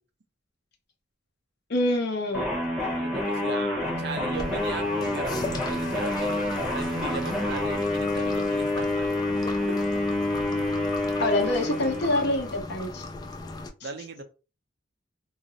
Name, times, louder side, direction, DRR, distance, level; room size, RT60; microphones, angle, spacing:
voice 1, 1.7-2.5 11.2-13.0 13.8-13.9, left 1 dB, 60° left, 0.8 m, -26 dB
sound 1, 2.3-12.6, left 1 dB, ahead, 0.8 m, -28 dB
voice 2, 3.0-9.1 9.7-9.8 13.8-14.2, right 4 dB, 60° right, 0.5 m, -37 dB
sound 2, 4.3-13.7, left 3 dB, 20° left, 0.3 m, -38 dB
2.5 x 2.0 x 3.8 m
head